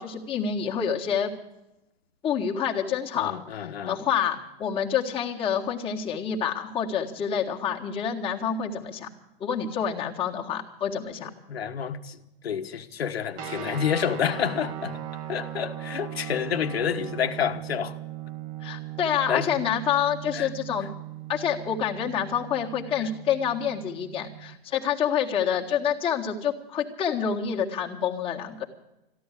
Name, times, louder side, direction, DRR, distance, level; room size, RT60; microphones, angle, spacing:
voice 1, 0.0-1.3 2.2-3.4 3.9-9.1 9.4-11.3 18.6-20.9 21.3-28.7, left 8 dB, 20° left, 1.8 m, -27 dB
voice 2, 3.1-4.0 11.2-15.0 15.3-18.0 19.3-19.5 20.3-20.5 20.8-20.9 22.9-23.1, left 8 dB, 85° left, 1.3 m, -29 dB
sound 1, 13.4-24.6, right 11 dB, 25° right, 1.3 m, -38 dB
14.5 x 11.0 x 8.4 m
hypercardioid pair, 140°, 30 cm